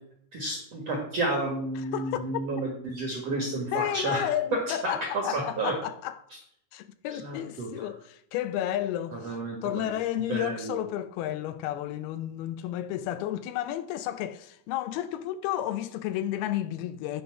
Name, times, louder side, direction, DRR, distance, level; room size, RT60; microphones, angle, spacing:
voice 1, 0.3-4.3 4.8-5.7 7.2-7.7 9.1-9.9 10.2-10.8, right 2 dB, 50° right, 2.1 m, -31 dB
voice 2, 1.8-2.4 3.7-6.2 6.7-9.4 9.6-17.2, left 12 dB, 80° left, 2.5 m, -32 dB
9.2 x 7.1 x 5.8 m
omnidirectional pair, 4.5 m